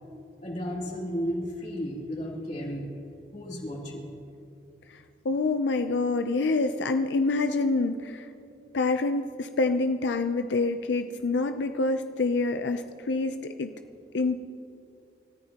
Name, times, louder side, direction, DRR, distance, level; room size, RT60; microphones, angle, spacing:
voice 1, 0.4-2.9 3.3-4.1, equal, 40° left, -3 dB, 2.9 m, -33 dB
voice 2, 4.9-8.3 8.7-13.7 14.1-14.4, left 3 dB, 90° left, 8 dB, 0.5 m, -27 dB
28.5 x 14.0 x 2.9 m, 2.6 s
head